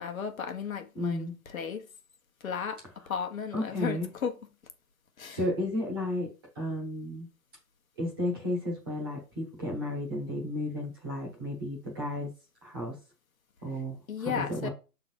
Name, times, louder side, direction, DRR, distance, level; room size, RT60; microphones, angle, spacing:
voice 1, 0.0-1.8 2.4-2.8 3.1-4.3 5.2-5.4 14.1-14.7, left 7 dB, 55° left, 1.2 m, -34 dB
voice 2, 0.9-1.3 3.5-4.1 5.3-6.3 6.5-7.3 8.0-12.3 12.6-13.0 13.6-14.7, left 1 dB, 15° right, 1.1 m, -33 dB
6.2 x 3.9 x 4.4 m
hypercardioid pair, 175°, 49 cm